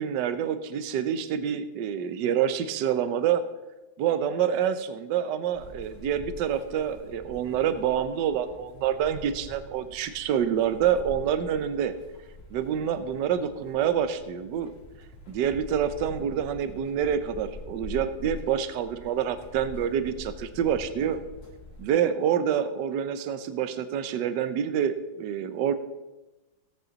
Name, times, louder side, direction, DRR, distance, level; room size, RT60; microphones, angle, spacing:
voice 1, 0.0-3.4 4.0-11.9 12.5-14.7 15.3-21.2 21.8-25.7, right 9 dB, 75° right, 11 dB, 1.3 m, -27 dB
sound 1, 5.5-21.9, left 1 dB, 45° left, 2.4 m, -45 dB
16.5 x 8.9 x 4.0 m, 1.1 s
omnidirectional pair, 2.0 m